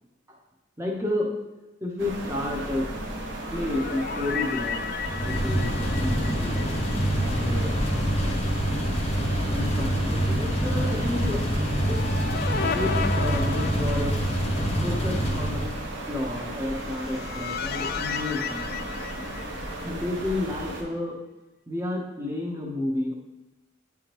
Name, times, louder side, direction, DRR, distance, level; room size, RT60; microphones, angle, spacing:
voice 1, 0.8-1.3 1.8-2.9 3.5-6.9 7.2-7.7 9.5-11.4 11.9-12.0 12.7-14.2 14.8-15.6 16.1-18.7 19.0-19.1 19.8-21.2 21.7-23.1, left 1 dB, 15° right, -1 dB, 1.1 m, -31 dB
sound 1, 2.0-20.8, right 1 dB, 65° right, 1.0 m, -35 dB
sound 2, 3.3-7.6 7.9-8.0 11.5-14.6 16.7-20.1, left 6 dB, 50° left, 0.3 m, -34 dB
sound 3, 5.0-15.8, equal, 35° left, 0.7 m, -26 dB
9.8 x 3.6 x 3.1 m, 1.0 s
head